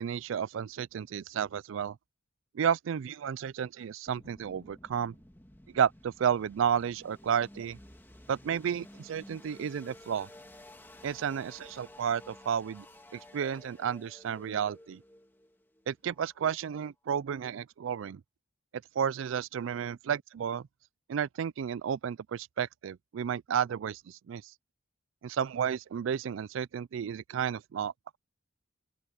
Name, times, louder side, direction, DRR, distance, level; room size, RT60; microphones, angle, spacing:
voice 1, 0.0-2.0 2.5-5.1 5.7-7.8 8.3-10.3 11.0-12.9 13.1-15.0 15.9-18.2 19.0-20.7 21.1-24.4 25.2-28.2, right 8 dB, 75° right, 0.3 m, -32 dB
sound 1, 4.1-16.9, left 1 dB, 10° left, 1.6 m, -54 dB
open air
head